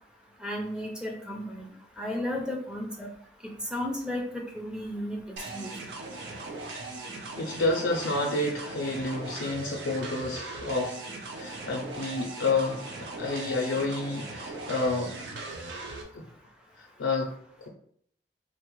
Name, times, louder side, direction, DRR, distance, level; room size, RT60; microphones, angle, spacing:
voice 1, 0.4-1.7 2.0-3.1 3.7-5.7, left 1 dB, 5° right, -1 dB, 0.5 m, -34 dB
sound 1, 5.4-16.0, right 3 dB, 80° right, 0.6 m, -39 dB
voice 2, 7.4-11.0 11.3-15.2 16.1-16.3 16.8-17.3, left 2 dB, 90° left, 0 dB, 0.5 m, -29 dB
3.7 x 2.1 x 3.0 m, 0.64 s
head